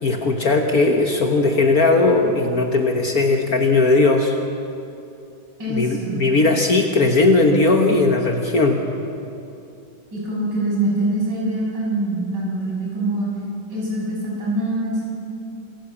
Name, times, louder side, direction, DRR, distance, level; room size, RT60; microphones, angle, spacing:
voice 1, 0.0-4.4 5.7-8.8, left 3 dB, 50° left, 3 dB, 1.6 m, -18 dB
voice 2, 5.6-6.2 10.1-13.3 13.7-15.0, right 1 dB, 55° right, -4 dB, 6.7 m, -24 dB
26.0 x 14.0 x 8.5 m, 2.7 s
omnidirectional pair, 2.2 m